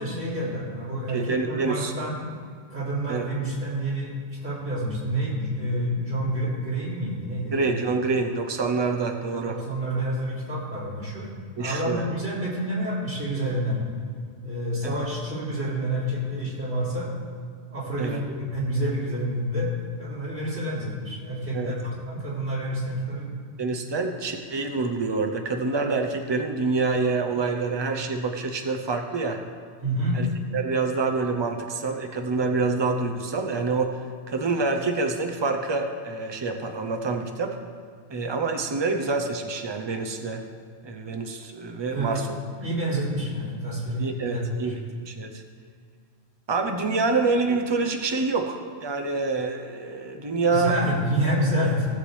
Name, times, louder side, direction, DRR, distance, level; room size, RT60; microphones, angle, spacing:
voice 1, 0.0-2.1 2.7-4.1 4.4-7.8 9.4-11.3 11.5-13.8 14.4-17.1 17.7-19.7 20.0-23.3 29.8-30.2 41.9-42.1 42.6-44.8 50.5-51.9, right 1 dB, 85° right, -8 dB, 3.8 m, -28 dB
voice 2, 1.1-1.9 3.1-3.2 7.5-9.6 11.6-12.1 14.8-14.9 18.0-18.2 21.5-21.7 23.6-29.4 30.1-30.3 30.5-34.0 34.3-37.6 38.1-40.4 40.8-42.3 44.0-45.4 46.5-50.8, right 3 dB, 25° right, 4 dB, 0.7 m, -26 dB
17.5 x 7.3 x 3.4 m, 2.1 s
omnidirectional pair, 1.3 m